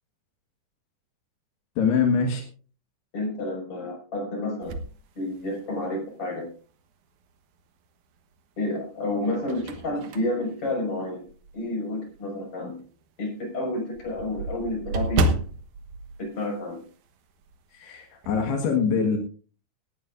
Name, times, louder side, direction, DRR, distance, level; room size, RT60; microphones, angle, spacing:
voice 1, 1.8-2.5 17.7-19.2, left 5 dB, 80° left, 3 dB, 3.7 m, -23 dB
voice 2, 3.1-4.8 5.1-6.5 8.6-11.3 11.5-12.8 13.2-15.4 16.2-16.8, left 2 dB, 35° left, 1 dB, 6.6 m, -30 dB
sound 1, 4.6-5.9 6.5-6.6 8.0-8.6 9.0-11.7 12.1-12.3 12.6-12.7 13.0-13.1 13.3-17.1 17.4-17.6 17.9-18.5, right 2 dB, 60° right, 2.4 m, -31 dB
18.5 x 14.0 x 2.6 m, 0.38 s
omnidirectional pair, 4.7 m